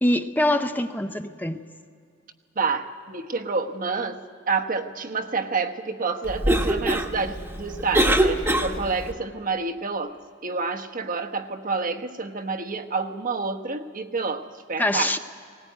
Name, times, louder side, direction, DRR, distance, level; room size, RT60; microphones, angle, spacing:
voice 1, 0.0-1.6 14.8-15.2, left 1 dB, 10° left, 7 dB, 0.6 m, -24 dB
voice 2, 2.6-15.1, right 4 dB, 45° right, 5 dB, 1.1 m, -28 dB
Cough, 6.2-9.1, right 1 dB, 10° right, 1.2 m, -23 dB
19.5 x 18.0 x 9.2 m, 2.4 s
head